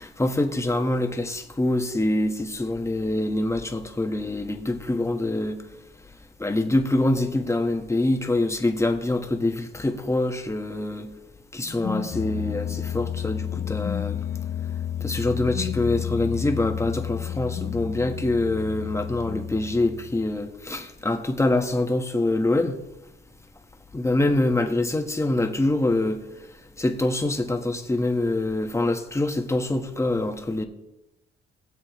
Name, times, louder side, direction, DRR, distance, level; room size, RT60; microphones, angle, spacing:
voice 1, 0.0-5.6 6.4-11.1 11.5-14.2 15.0-22.8 23.9-26.2 26.8-30.6, left 2 dB, 15° left, 1.4 m, -25 dB
sound 1, 11.6-20.4, left 10 dB, 45° left, 0.4 m, -31 dB
20.0 x 7.6 x 3.2 m
cardioid pair, 90°, 20 cm